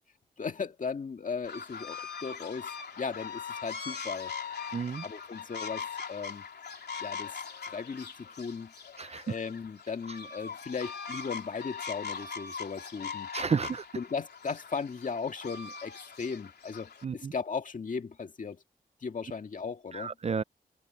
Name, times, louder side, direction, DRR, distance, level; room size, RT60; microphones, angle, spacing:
voice 1, 0.4-2.7 3.0-4.3 5.0-6.5 7.0-7.4 7.6-8.7 9.2-13.3 13.9-18.6 19.0-20.1, left 5 dB, 50° left, 1.8 m, -37 dB
sound 1, 1.4-17.0, left 6 dB, 80° left, 3.2 m, -41 dB
voice 2, 4.7-5.0 9.0-9.2 13.3-13.9 17.0-17.3 19.9-20.4, right 5 dB, 40° right, 0.4 m, -31 dB
wide cardioid pair, 165°, 17 cm